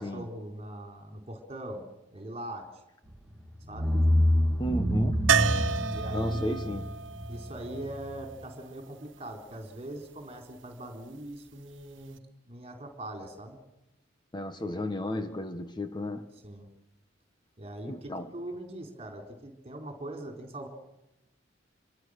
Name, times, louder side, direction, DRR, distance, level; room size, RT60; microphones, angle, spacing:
voice 1, 0.0-2.7 3.7-3.9 5.9-6.6 7.3-12.2 12.4-13.6 16.4-16.7 17.6-20.7, right 1 dB, 35° right, 5 dB, 4.2 m, -41 dB
sound 1, 3.1-3.3 3.7-8.3, equal, ahead, 2.6 m, -27 dB
voice 2, 4.6-5.1 6.1-6.9 14.3-16.3 17.9-18.3, left 1 dB, 25° left, 8 dB, 1.3 m, -33 dB
sound 2, 5.3-9.2 11.8-11.9 12.2-12.3, right 7 dB, 85° right, 0.8 m, -31 dB
26.5 x 23.0 x 6.6 m, 0.93 s
head